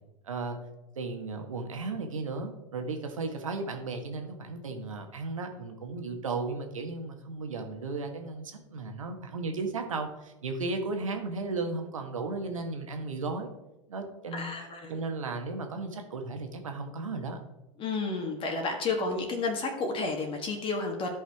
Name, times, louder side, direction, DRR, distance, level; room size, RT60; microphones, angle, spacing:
voice 1, 0.2-0.6 0.9-13.5 13.9-14.5 14.9-17.4, right 3 dB, 85° right, 5 dB, 1.5 m, -35 dB
voice 2, 14.3-14.9 17.8-21.1, left 3 dB, 30° left, 2 dB, 1.5 m, -31 dB
13.0 x 5.4 x 3.5 m, 0.97 s
hypercardioid pair, 100°, 16 cm